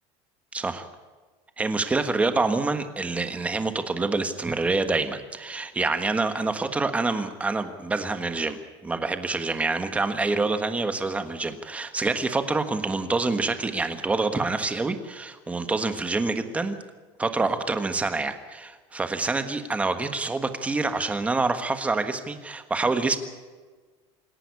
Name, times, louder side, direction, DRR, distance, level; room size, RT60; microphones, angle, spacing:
voice 1, 0.5-0.9 1.6-16.8 17.2-23.2, right 3 dB, 10° right, 8 dB, 1.4 m, -26 dB
26.5 x 11.5 x 9.8 m, 1.4 s
cardioid pair, 180°, 14 cm